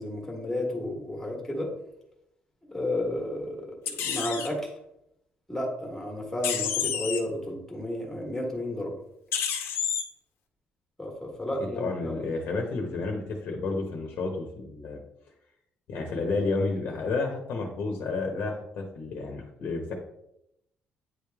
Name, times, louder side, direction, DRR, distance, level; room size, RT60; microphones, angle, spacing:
voice 1, 0.0-1.7 2.7-4.7 5.5-9.0 11.0-12.2, left 1 dB, 5° left, 0 dB, 1.5 m, -32 dB
sound 1, 3.9-4.5 6.4-7.2 9.3-10.0, left 8 dB, 75° left, 1.0 m, -29 dB
voice 2, 11.8-15.0 15.9-19.9, left 3 dB, 55° left, 2 dB, 1.0 m, -31 dB
9.4 x 3.3 x 3.5 m, 0.80 s
cardioid pair, 175°, 4 cm